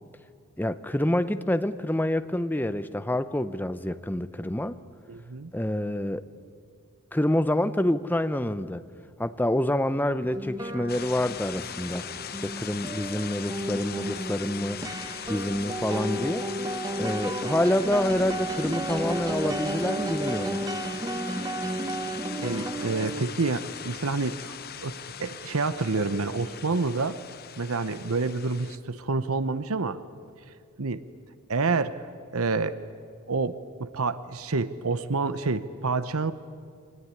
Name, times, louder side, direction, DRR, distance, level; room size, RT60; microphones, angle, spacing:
voice 1, 0.6-4.8 5.5-6.3 7.1-8.8 9.2-12.0 12.4-14.8 15.3-16.5 17.0-20.6, left 1 dB, 10° left, 12 dB, 0.6 m, -27 dB
voice 2, 5.1-5.5 22.4-27.2 27.6-30.0 30.8-31.0 31.5-32.0 32.3-32.8 33.3-36.3, right 3 dB, 75° right, 13 dB, 0.9 m, -28 dB
sound 1, 10.2-23.3, right 1 dB, 15° right, 0.9 m, -33 dB
sound 2, 10.9-28.8, left 8 dB, 45° left, 0.9 m, -40 dB
24.0 x 19.5 x 9.7 m, 2.1 s
head